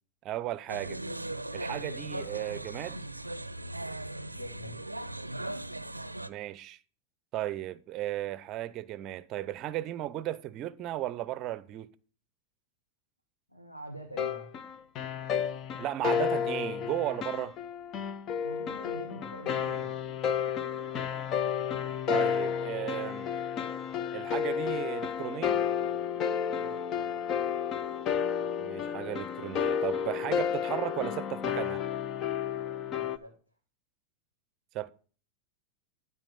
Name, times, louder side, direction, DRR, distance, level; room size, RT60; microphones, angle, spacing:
voice 1, 0.2-1.0 1.5-3.0 6.3-6.8 7.3-11.9 15.8-17.6 22.1-23.3 24.1-25.6 28.6-31.8 34.7-34.9, right 14 dB, 35° right, 0.6 m, -35 dB
sound 1, 0.7-6.3, right 1 dB, 85° right, 0.5 m, -38 dB
voice 2, 4.3-5.0 13.5-14.5 18.4-19.9 26.6-27.0 32.9-33.3, equal, 85° left, 1.7 m, -45 dB
sound 2, 14.2-33.2, left 8 dB, 35° left, 0.7 m, -31 dB
12.0 x 4.6 x 7.2 m
figure-of-eight pair, 90°, 0 cm